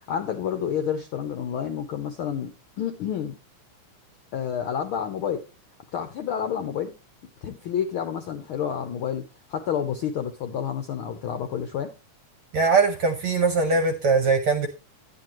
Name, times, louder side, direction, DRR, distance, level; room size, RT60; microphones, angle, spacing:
voice 1, 0.1-3.3 4.3-5.4 5.9-6.9 7.4-11.9, left 8 dB, 75° left, 7 dB, 1.2 m, -29 dB
voice 2, 12.5-14.7, right 4 dB, 65° right, 7 dB, 1.4 m, -21 dB
10.5 x 9.5 x 3.0 m, 0.29 s
omnidirectional pair, 3.4 m